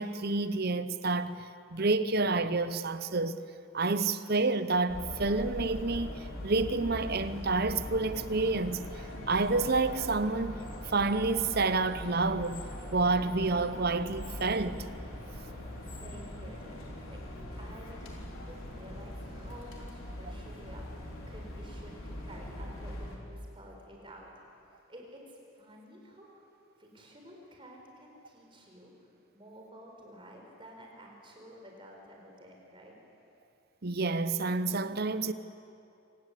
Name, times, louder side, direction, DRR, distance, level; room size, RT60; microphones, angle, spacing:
voice 1, 0.0-1.4 1.7-3.4 3.7-8.8 9.3-12.6 12.9-14.9 33.8-35.3, right 3 dB, 50° right, 0.8 m, -29 dB
sound 1, 4.9-23.2, left 1 dB, 85° left, 3.9 m, -42 dB
voice 2, 15.8-16.8 17.1-17.2 17.6-24.3 24.6-26.5 26.8-28.9 29.3-33.0, equal, 25° right, 4.5 m, -51 dB
26.5 x 18.5 x 8.4 m
head